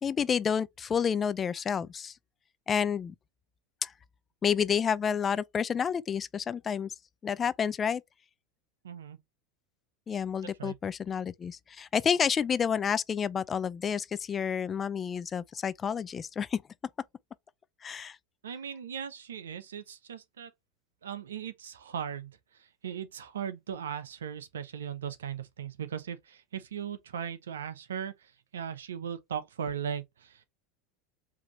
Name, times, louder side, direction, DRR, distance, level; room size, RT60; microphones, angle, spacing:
voice 1, 0.0-2.1 2.7-3.1 3.8-3.9 4.4-6.9 7.2-8.0 10.1-16.6 17.8-18.2, left 7 dB, 30° left, 0.4 m, -29 dB
voice 2, 8.8-9.2 10.6-10.8 18.4-20.5 21.0-22.3 22.6-30.4, right 8 dB, 85° right, 0.7 m, -38 dB
4.9 x 2.8 x 3.1 m
hypercardioid pair, 95°, 0 cm